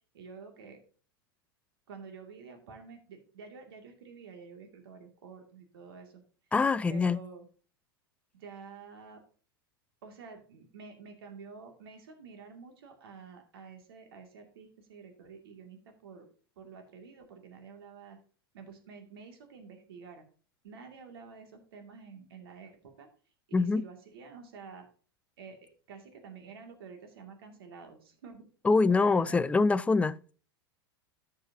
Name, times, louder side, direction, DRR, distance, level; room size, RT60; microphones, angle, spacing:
voice 1, 0.1-0.8 1.9-6.2 6.9-7.5 8.3-9.2 10.0-16.3 16.6-18.2 18.5-20.2 20.6-23.1 23.6-24.9 25.4-28.5 28.9-29.5, right 5 dB, 75° right, 2.3 m, -49 dB
voice 2, 6.5-7.2 23.5-23.9 28.6-30.3, left 4 dB, 10° left, 0.4 m, -25 dB
13.5 x 6.3 x 2.8 m
hypercardioid pair, 100°, 13 cm